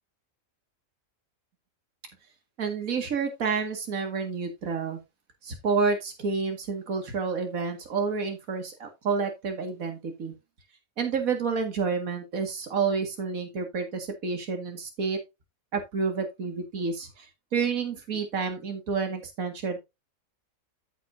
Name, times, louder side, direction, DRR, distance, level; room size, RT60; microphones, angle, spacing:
voice 1, 2.6-5.0 5.4-10.3 11.0-15.2 15.7-17.3 17.5-19.8, right 5 dB, 80° right, 5 dB, 2.3 m, -29 dB
13.5 x 6.1 x 2.6 m, 0.23 s
omnidirectional pair, 1.5 m